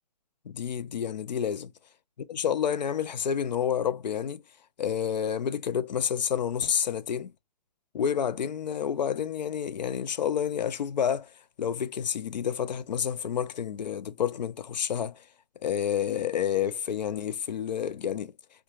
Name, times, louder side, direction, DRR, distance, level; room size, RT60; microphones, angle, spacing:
voice 1, 0.5-1.7 2.3-4.4 4.8-7.3 7.9-15.3 15.6-18.3, left 8 dB, 85° left, 0.4 m, -29 dB
2.4 x 2.2 x 2.9 m
hypercardioid pair, 175°, 21 cm